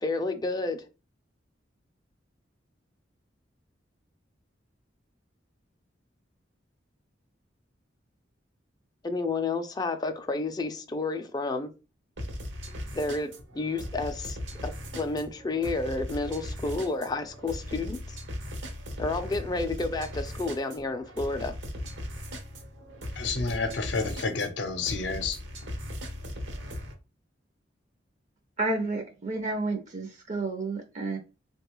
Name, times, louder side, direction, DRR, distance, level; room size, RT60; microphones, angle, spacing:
voice 1, 0.0-0.8 9.0-11.7 12.9-14.4 14.6-18.2 19.0-21.6, left 3 dB, 20° left, 0.4 m, -30 dB
sound 1, 12.2-26.9, left 1 dB, 75° right, 0.8 m, -38 dB
voice 2, 23.2-25.4, left 4 dB, 65° left, 0.6 m, -30 dB
voice 3, 28.6-31.2, right 2 dB, 40° right, 0.5 m, -31 dB
3.5 x 2.3 x 2.9 m
head